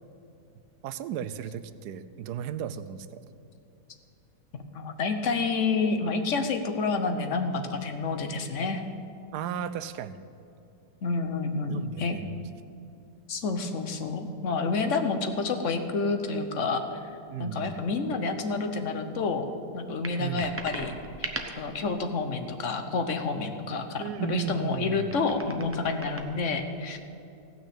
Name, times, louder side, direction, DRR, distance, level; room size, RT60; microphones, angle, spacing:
voice 1, 0.8-3.2 9.3-10.2 11.7-12.5 17.3-17.8 20.2-20.5 24.0-25.2, right 8 dB, 75° right, 13 dB, 1.1 m, -35 dB
voice 2, 4.5-8.8 11.0-12.2 13.3-16.8 17.4-19.4 19.7-20.9 21.2-21.3 21.6-27.0, left 4 dB, 50° left, 7 dB, 1.1 m, -29 dB
sound 1, 20.0-21.7 24.5-26.2, right 1 dB, 15° right, 0.5 m, -38 dB
16.0 x 6.2 x 8.5 m, 2.7 s
omnidirectional pair, 1.9 m